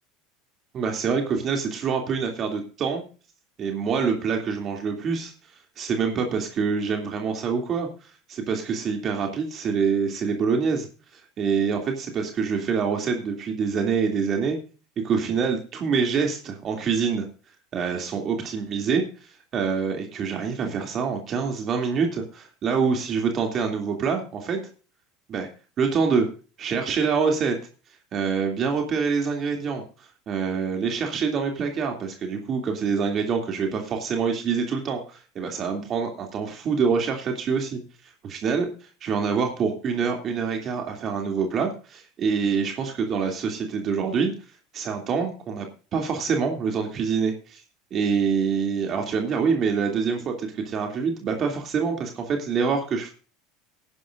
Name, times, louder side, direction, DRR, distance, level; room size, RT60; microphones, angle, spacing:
voice 1, 0.7-3.0 3.6-5.3 5.8-10.9 11.1-14.6 15.0-17.2 17.7-19.0 19.5-24.6 25.3-25.5 25.8-26.3 26.6-27.6 28.1-38.7 39.0-44.3 44.7-45.7 45.9-47.6 47.9-53.1, right 5 dB, 35° right, 3 dB, 2.7 m, -26 dB
18.0 x 10.5 x 2.6 m, 0.36 s
supercardioid pair, 135°, 0 cm